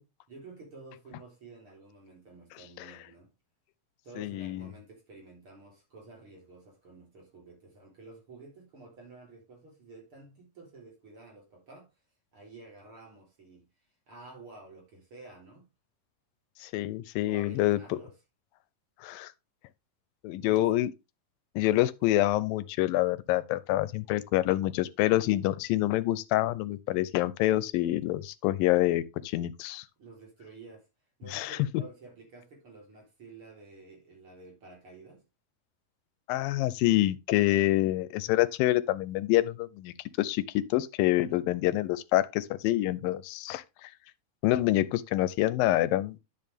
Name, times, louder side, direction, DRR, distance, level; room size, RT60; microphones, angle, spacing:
voice 1, 0.3-3.3 4.0-11.9 12.3-13.7 14.1-15.7 17.3-18.1 20.4-20.7 21.7-21.8 30.0-30.9 31.2-35.3 41.2-41.4, right 3 dB, 40° right, 4.2 m, -51 dB
voice 2, 4.2-4.7 16.6-18.0 19.0-19.3 20.2-20.9 21.6-29.8 31.3-31.6 36.3-43.9 44.4-46.2, left 15 dB, 85° left, 2.4 m, -27 dB
10.5 x 7.1 x 3.4 m
omnidirectional pair, 4.0 m